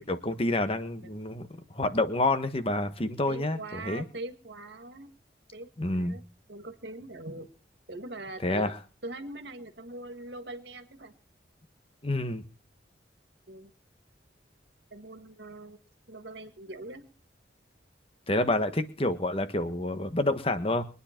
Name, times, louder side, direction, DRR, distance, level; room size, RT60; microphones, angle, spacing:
voice 1, 0.1-4.0 5.8-6.2 8.4-8.8 12.0-12.5 18.3-20.8, left 2 dB, 30° left, 10 dB, 1.4 m, -28 dB
voice 2, 3.3-5.1 5.5-6.2 6.5-7.5 7.9-8.7 9.0-11.1 13.5-13.7 14.9-15.8 16.1-17.1, right 2 dB, 70° right, 8 dB, 2.0 m, -42 dB
23.5 x 9.7 x 4.5 m, 0.35 s
head